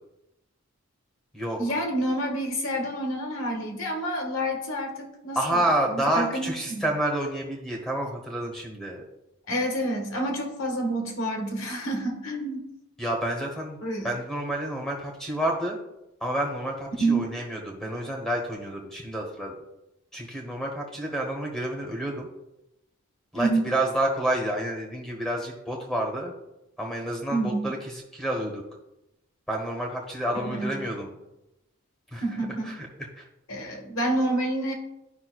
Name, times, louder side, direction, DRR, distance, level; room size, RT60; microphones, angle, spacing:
voice 1, 1.6-5.6 5.9-6.8 9.5-12.6 13.8-14.1 17.0-17.2 23.3-23.7 27.3-27.7 30.4-30.8 32.2-32.7 33.5-34.7, right 1 dB, 70° left, 2 dB, 1.5 m, -28 dB
voice 2, 5.3-9.0 13.0-13.8 14.0-15.8 16.2-19.6 20.1-22.3 23.3-26.3 26.8-28.6 29.5-31.2 32.1-32.9 33.2-33.3, right 1 dB, ahead, 0 dB, 1.1 m, -29 dB
11.0 x 5.4 x 2.3 m, 0.93 s
head